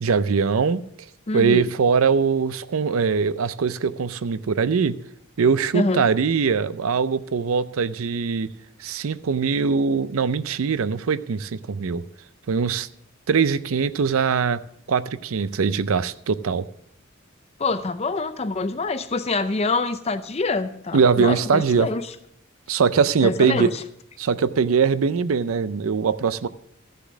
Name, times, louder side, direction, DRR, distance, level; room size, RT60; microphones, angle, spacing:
voice 1, 0.0-0.8 1.3-5.0 5.4-8.5 8.8-12.0 12.5-12.9 13.3-14.6 14.9-16.6 20.9-21.9 22.7-23.7 24.2-26.5, right 5 dB, 80° right, 15 dB, 0.5 m, -21 dB
voice 2, 1.3-1.7 5.7-6.1 17.6-22.1 23.2-23.8, left 3 dB, 30° left, 12 dB, 0.6 m, -25 dB
13.5 x 6.8 x 6.1 m, 0.74 s
head